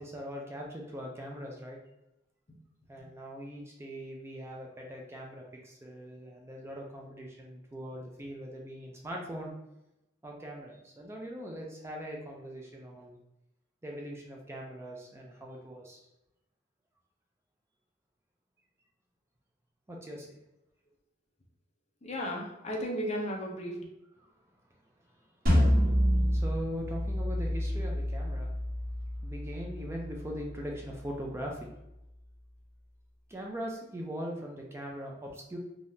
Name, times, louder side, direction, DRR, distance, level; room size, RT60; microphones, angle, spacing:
voice 1, 0.0-1.8 2.9-9.5 10.2-13.2 13.8-16.1 19.9-20.3 24.2-24.3 25.4-25.9 26.3-28.5 29.2-31.7 33.3-35.6, equal, 15° right, -1 dB, 0.4 m, -41 dB
voice 2, 22.0-23.8, equal, 35° left, 0 dB, 0.6 m, -35 dB
sound 1, 25.5-30.5, equal, 55° right, 1.1 m, -28 dB
3.4 x 2.3 x 2.6 m, 0.89 s
head